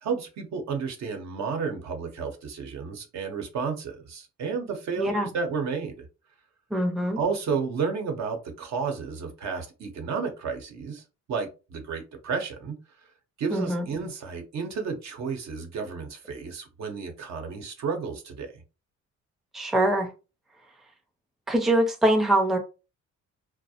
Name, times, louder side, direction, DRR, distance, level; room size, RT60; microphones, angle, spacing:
voice 1, 0.0-6.0 7.2-11.0 11.3-12.8 13.4-18.5, right 5 dB, 65° right, 0.8 m, -32 dB
voice 2, 5.0-5.3 6.7-7.2 13.5-13.8 19.5-20.1 21.5-22.6, right 1 dB, ahead, 0.4 m, -23 dB
2.4 x 2.0 x 2.7 m
cardioid pair, 90°, 30 cm